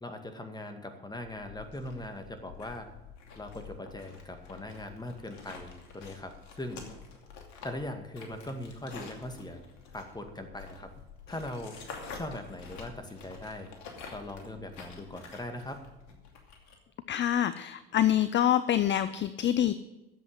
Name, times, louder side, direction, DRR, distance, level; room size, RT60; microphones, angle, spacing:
voice 1, 0.0-2.9 3.4-6.8 7.6-9.6 9.9-10.9 11.3-11.8 12.1-13.7 14.1-15.8, left 1 dB, 15° left, 6 dB, 2.1 m, -40 dB
sound 1, 1.1-16.7, left 5 dB, 60° left, 2.6 m, -48 dB
voice 2, 17.1-19.7, left 11 dB, 35° left, 14 dB, 0.6 m, -26 dB
11.0 x 7.8 x 9.0 m, 1.0 s
hypercardioid pair, 65°, 31 cm